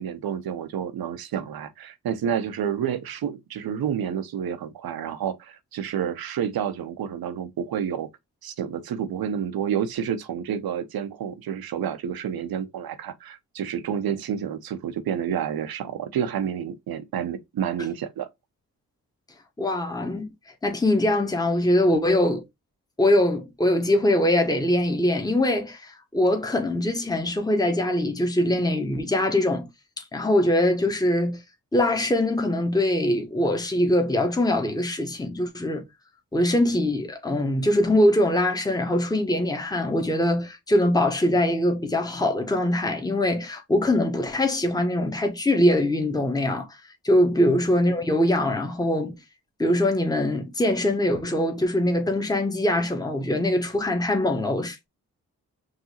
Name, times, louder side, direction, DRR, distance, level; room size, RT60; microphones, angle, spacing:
voice 1, 0.0-8.1 8.4-18.3 47.4-47.5, right 8 dB, 70° right, 0.7 m, -29 dB
voice 2, 19.6-20.3 20.6-22.4 23.0-29.7 30.0-31.4 31.7-35.8 36.3-46.7 47.0-49.1 49.6-54.9, left 1 dB, 10° left, 1.1 m, -22 dB
4.8 x 2.7 x 2.8 m
supercardioid pair, 40°, 37 cm